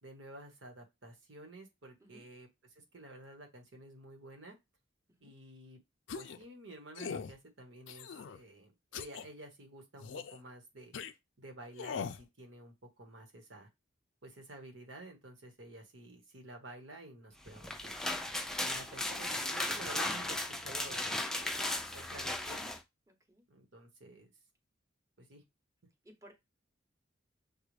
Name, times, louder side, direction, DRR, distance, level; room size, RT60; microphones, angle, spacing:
voice 1, 0.0-2.5 2.7-4.6 5.2-5.8 6.1-10.9 11.4-13.7 14.2-18.1 18.6-22.7 23.5-24.3 25.2-25.4, right 1 dB, 75° right, 3 dB, 1.4 m, -51 dB
sound 1, 6.1-6.4 6.9-7.3 7.9-8.4 8.9-9.2 10.0-10.4 10.9-11.1 11.8-12.2, left 6 dB, 70° left, 0.4 m, -41 dB
sound 2, 17.5-22.8, left 1 dB, 5° left, 0.4 m, -36 dB
voice 2, 23.1-23.4 26.0-26.3, right 1 dB, 15° right, 4 dB, 0.9 m, -58 dB
6.6 x 2.4 x 3.2 m, 0.21 s
head